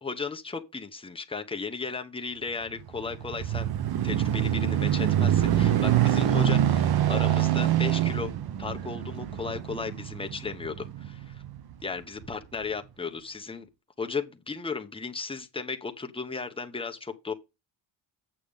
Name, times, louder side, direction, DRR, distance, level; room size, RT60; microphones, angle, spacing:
voice 1, 0.0-3.7 4.0-8.3 8.6-11.4 11.8-13.7 14.0-17.3, left 4 dB, 10° left, 1.0 m, -35 dB
sound 1, 2.8-11.6 12.2-12.3, right 11 dB, 50° right, 1.0 m, -25 dB
8.6 x 6.6 x 3.6 m
cardioid pair, 140°, 47 cm